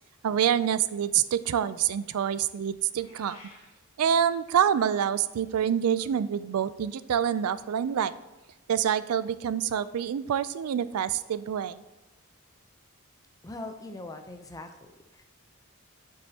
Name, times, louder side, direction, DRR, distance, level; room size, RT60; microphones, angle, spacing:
voice 1, 0.2-3.4 4.0-8.1 8.7-11.8, right 9 dB, 85° right, 15 dB, 0.4 m, -26 dB
Meow, 2.9-3.7, left 2 dB, 85° left, 2.9 m, -51 dB
voice 2, 13.4-15.2, left 2 dB, 15° left, 6 dB, 0.6 m, -41 dB
9.9 x 7.6 x 2.8 m, 1.1 s
head